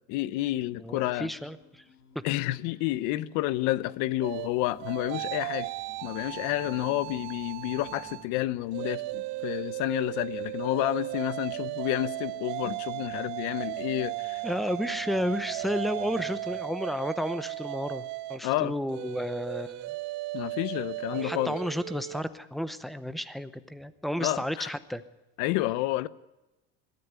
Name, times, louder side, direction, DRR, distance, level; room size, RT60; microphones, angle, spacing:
voice 1, 0.1-1.3 2.2-5.7 6.0-14.4 18.4-18.7 20.3-21.6 24.2-24.7 25.4-26.1, left 16 dB, 70° left, 0.9 m, -30 dB
sound 1, 0.6-16.6, left 4 dB, 55° left, 6.2 m, -56 dB
voice 2, 0.8-1.8 14.4-19.9 21.1-25.0, equal, ahead, 0.7 m, -32 dB
sound 2, 4.2-8.3 8.7-22.2, right 20 dB, 65° right, 0.8 m, -36 dB
21.5 x 13.5 x 9.6 m
cardioid pair, 170°, 30 cm